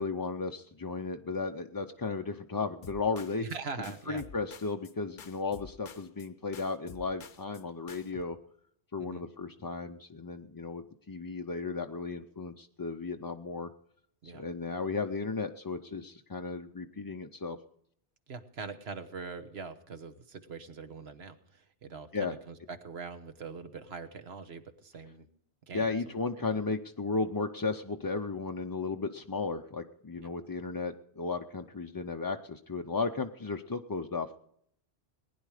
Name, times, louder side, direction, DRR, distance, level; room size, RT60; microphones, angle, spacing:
voice 1, 0.0-3.4 4.1-8.4 8.9-13.7 14.2-17.6 22.1-22.4 25.7-34.4, left 4 dB, 30° left, 5 dB, 0.4 m, -35 dB
sound 1, 2.8-3.6 3.8-4.9 5.2-6.3 6.5-7.6 7.9-8.2, left 6 dB, 55° left, 0.8 m, -50 dB
voice 2, 3.4-4.2 9.0-9.2 14.2-14.4 18.3-25.3 25.7-26.4 30.1-30.3, right 5 dB, 75° right, 9 dB, 1.4 m, -43 dB
19.5 x 10.5 x 4.9 m, 0.68 s
omnidirectional pair, 1.1 m